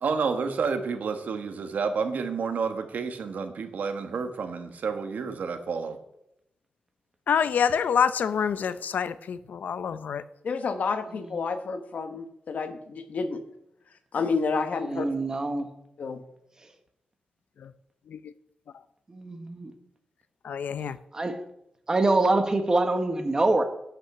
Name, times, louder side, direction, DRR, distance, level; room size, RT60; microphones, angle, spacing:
voice 1, 0.0-5.9, right 5 dB, 75° right, 7 dB, 1.5 m, -30 dB
voice 2, 7.3-10.2 17.6-17.7 18.1-18.3 20.4-21.0, left 7 dB, 90° left, 14 dB, 0.6 m, -27 dB
voice 3, 10.4-13.4 14.1-15.1 16.0-16.2, left 4 dB, 65° left, 8 dB, 1.3 m, -30 dB
voice 4, 14.9-15.7 19.1-19.7 21.1-21.4 21.9-23.6, right 2 dB, 25° right, 7 dB, 1.3 m, -24 dB
11.0 x 5.8 x 8.0 m, 0.79 s
wide cardioid pair, 165°, 3 cm